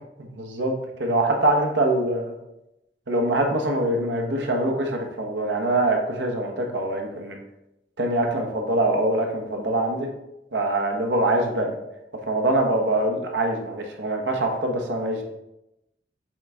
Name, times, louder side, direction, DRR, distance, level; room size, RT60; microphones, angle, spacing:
voice 1, 0.2-0.7 1.0-2.3 3.1-7.4 8.0-10.1 10.5-11.8 12.3-15.2, right 1 dB, 80° right, 2 dB, 1.2 m, -24 dB
7.7 x 3.9 x 3.6 m, 0.90 s
head